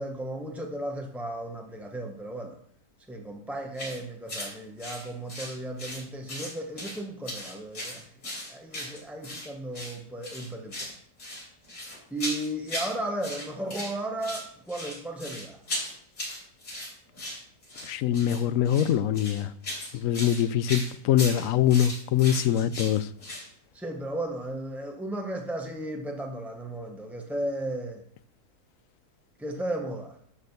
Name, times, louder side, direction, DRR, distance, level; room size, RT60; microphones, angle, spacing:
voice 1, 0.0-2.6 3.1-8.0 8.5-10.9 12.1-15.6 23.7-28.0 29.4-30.2, right 1 dB, ahead, 0.4 m, -35 dB
sound 1, 3.7-4.0 4.3-4.5 4.8-6.0 6.3-7.0 7.3-9.5 9.7-10.0 10.2-10.9 11.2-12.9 13.2-13.9 14.2-23.5, left 1 dB, 85° left, 4.2 m, -37 dB
voice 2, 17.8-19.5 19.9-23.1, left 10 dB, 70° left, 0.9 m, -24 dB
12.0 x 4.4 x 6.6 m
omnidirectional pair, 1.6 m